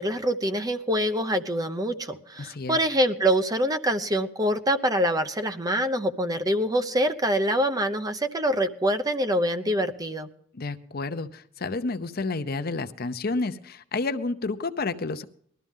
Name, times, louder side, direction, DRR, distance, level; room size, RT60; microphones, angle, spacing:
voice 1, 0.0-10.3, equal, 20° right, 9 dB, 0.8 m, -25 dB
voice 2, 2.4-2.8 10.5-15.2, left 3 dB, 50° left, 11 dB, 0.7 m, -30 dB
20.5 x 13.0 x 3.7 m, 0.64 s
head